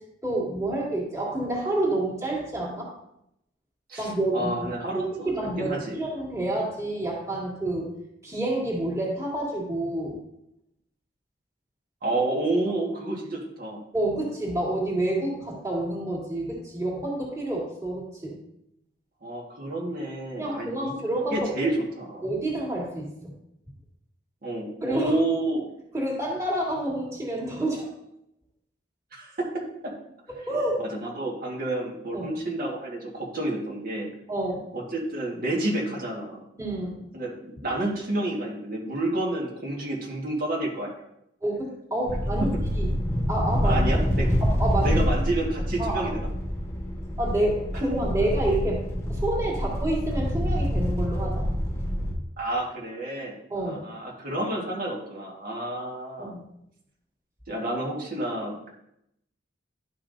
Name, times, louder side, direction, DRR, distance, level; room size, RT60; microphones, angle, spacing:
voice 1, 0.2-2.9 4.0-4.5 4.9-7.9 8.2-10.2 13.9-18.4 20.4-21.7 22.2-23.1 24.8-25.1 25.9-27.9 30.5-30.8 32.1-32.3 34.3-34.7 36.6-37.0 41.4-42.5 42.8-42.9 43.3-45.0 45.8-46.1 47.2-48.8 49.1-51.5 53.5-53.8 56.2-56.4, right 1 dB, 15° right, -5 dB, 2.2 m, -28 dB
voice 2, 3.9-6.0 12.0-13.8 19.2-20.9 21.3-22.3 24.4-25.7 29.1-29.9 30.8-34.1 34.7-36.4 37.1-40.9 43.6-44.3 44.8-46.3 52.4-56.3 57.5-58.7, right 1 dB, 50° right, -2 dB, 1.6 m, -30 dB
sound 1, 42.1-52.1, equal, 15° left, 1.2 m, -26 dB
11.5 x 5.6 x 2.6 m, 0.79 s
head